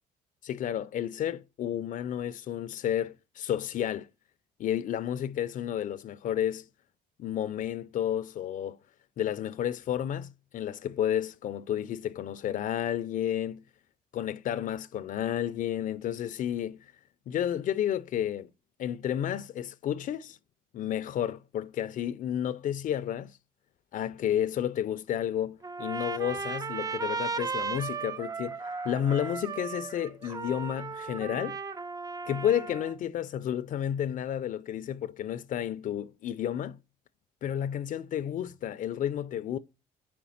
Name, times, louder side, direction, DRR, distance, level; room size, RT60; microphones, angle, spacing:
voice 1, 0.4-4.1 4.6-6.7 7.2-8.8 9.2-13.6 14.1-16.9 17.3-18.5 18.8-20.4 20.7-23.4 23.9-31.6 32.3-36.8 37.4-39.6, left 10 dB, 50° left, 0.4 m, -31 dB
Trumpet, 25.6-33.0, right 5 dB, 20° right, 0.4 m, -36 dB
5.1 x 4.4 x 5.6 m
cardioid pair, 110°, 17 cm